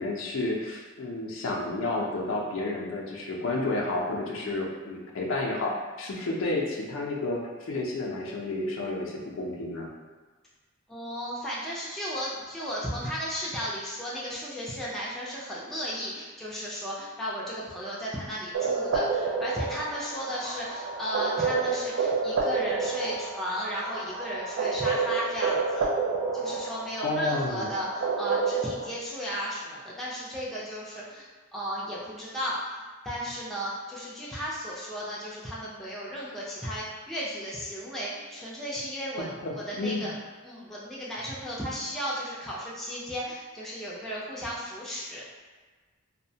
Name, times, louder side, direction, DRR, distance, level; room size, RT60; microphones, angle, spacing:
voice 1, 0.0-9.9 27.0-27.7 39.2-40.1, left 2 dB, 80° left, -2 dB, 0.5 m, -31 dB
voice 2, 10.9-25.9 26.3-32.8 33.0-40.1 40.4-45.2, equal, ahead, -8 dB, 0.4 m, -35 dB
sound 1, 18.5-28.9, right 4 dB, 80° right, 0.4 m, -29 dB
2.6 x 2.1 x 2.7 m, 1.3 s
head